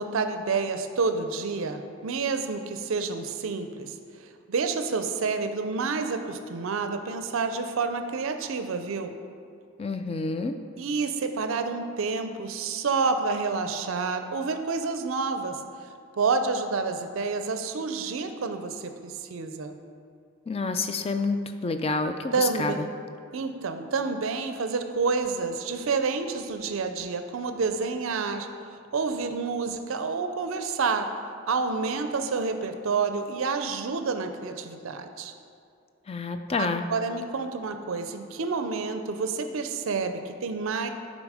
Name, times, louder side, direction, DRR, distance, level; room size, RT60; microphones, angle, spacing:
voice 1, 0.0-3.9 4.2-9.1 10.8-15.6 16.2-19.8 22.3-22.9 23.3-31.1 31.5-35.3 36.6-40.9, right 4 dB, 65° right, 7 dB, 0.5 m, -29 dB
voice 2, 9.8-10.6 20.5-22.9 36.1-36.8, left 3 dB, 25° left, 8 dB, 0.3 m, -28 dB
8.8 x 3.9 x 4.9 m, 2.4 s
head